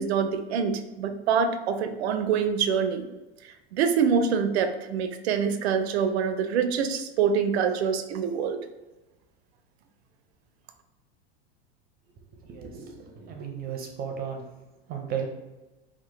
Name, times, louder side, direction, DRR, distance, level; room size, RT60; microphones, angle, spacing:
voice 1, 0.0-3.0 3.7-8.6, right 6 dB, 90° right, 8 dB, 0.5 m, -25 dB
voice 2, 12.4-14.4 14.9-15.3, right 7 dB, 30° right, 2 dB, 0.4 m, -34 dB
2.9 x 2.1 x 3.1 m, 1.1 s
supercardioid pair, 120°, 31 cm